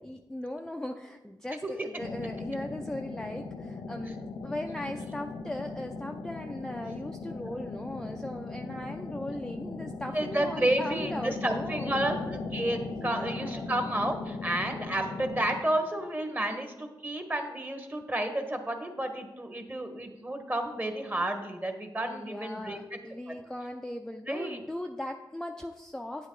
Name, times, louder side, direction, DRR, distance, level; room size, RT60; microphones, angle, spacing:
voice 1, 0.0-4.2 4.4-12.0 13.0-13.7 22.0-26.3, left 1 dB, 5° left, 4 dB, 0.5 m, -38 dB
sound 1, 2.0-15.6, left 3 dB, 60° left, 0.6 m, -38 dB
voice 2, 10.1-23.0 23.3-23.4 24.3-24.6, right 1 dB, 20° right, 6 dB, 1.3 m, -31 dB
9.0 x 8.0 x 3.9 m, 1.0 s
cardioid pair, 75°, 9 cm